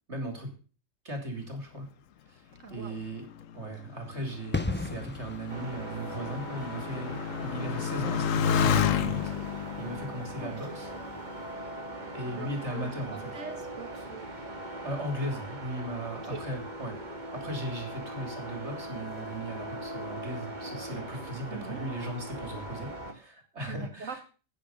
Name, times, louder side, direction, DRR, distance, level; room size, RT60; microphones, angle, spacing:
voice 1, 0.1-0.5 1.0-1.9 2.3-3.3 3.5-10.9 12.1-13.4 14.8-17.0 17.3-24.2, right 1 dB, 60° right, 4 dB, 3.6 m, -37 dB
voice 2, 2.6-3.0 10.4-10.5 12.3-14.2 16.1-16.4 21.5-21.8 23.7-24.2, right 5 dB, 75° right, 6 dB, 2.0 m, -42 dB
Motorcycle, 2.8-11.8 12.5-13.1, left 7 dB, 85° left, 1.2 m, -32 dB
sound 1, 4.5-11.0 11.3-11.5, left 2 dB, 10° left, 0.9 m, -39 dB
sound 2, 5.5-23.1, right 1 dB, 35° right, 2.0 m, -40 dB
10.0 x 9.5 x 7.1 m, 0.37 s
omnidirectional pair, 1.3 m